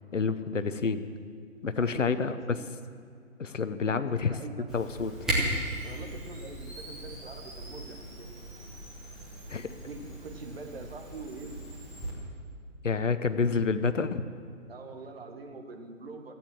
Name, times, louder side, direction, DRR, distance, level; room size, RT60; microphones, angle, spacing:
voice 1, 0.1-1.1 1.6-2.3 3.4-4.3 4.7-5.1 9.5-9.7 12.8-14.2, left 5 dB, 65° left, 12 dB, 0.8 m, -28 dB
voice 2, 1.7-2.7 3.8-4.7 5.8-8.3 9.7-11.7 14.7-16.3, right 3 dB, 45° right, 4 dB, 1.6 m, -44 dB
Camera, 4.7-12.1, right 1 dB, ahead, 0.9 m, -37 dB
14.5 x 8.8 x 7.5 m, 2.4 s
figure-of-eight pair, 140°, 40 cm